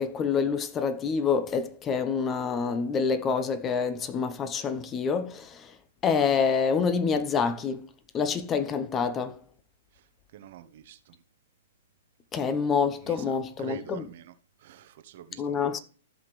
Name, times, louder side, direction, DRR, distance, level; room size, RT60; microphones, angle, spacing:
voice 1, 0.0-5.7 6.0-7.9 8.1-9.4 12.3-14.1 15.4-15.8, left 6 dB, 25° left, 0.9 m, -27 dB
voice 2, 10.3-11.2 13.0-14.3 14.6-15.8, right 10 dB, 55° right, 1.1 m, -46 dB
14.0 x 5.8 x 3.2 m
hypercardioid pair, 120°, 0 cm